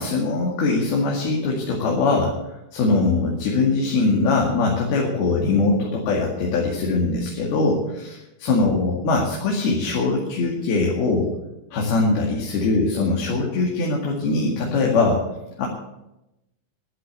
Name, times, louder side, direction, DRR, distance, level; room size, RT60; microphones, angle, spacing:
voice 1, 0.0-2.3 2.7-11.3 11.7-15.2 15.6-15.7, left 3 dB, 85° left, -2 dB, 4.0 m, -22 dB
12.0 x 11.0 x 8.4 m, 0.91 s
omnidirectional pair, 4.3 m